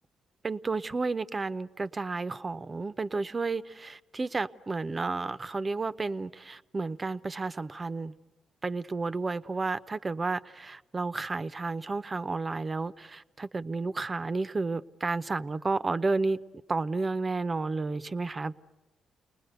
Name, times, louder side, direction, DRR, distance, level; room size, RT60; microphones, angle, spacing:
voice 1, 0.4-8.1 8.6-16.4 16.7-18.5, right 3 dB, 30° right, 0.7 m, -32 dB
29.0 x 20.0 x 8.0 m
cardioid pair, 90°, 0 cm